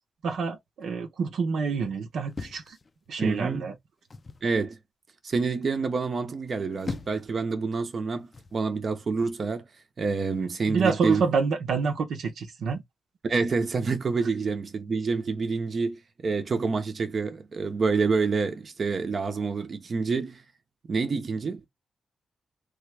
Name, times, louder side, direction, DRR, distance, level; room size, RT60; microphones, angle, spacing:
voice 1, 0.2-2.8 3.1-3.7 10.7-12.8, right 5 dB, 85° right, 0.8 m, -27 dB
sound 1, 2.3-3.4 4.1-4.5 6.5-7.4 8.3-8.6, left 4 dB, 40° left, 0.4 m, -39 dB
voice 2, 3.2-3.7 4.4-4.8 5.2-9.6 10.0-11.2 13.2-20.4 20.9-21.7, right 4 dB, 50° right, 0.7 m, -27 dB
3.4 x 2.3 x 3.3 m
cardioid pair, 75°, 0 cm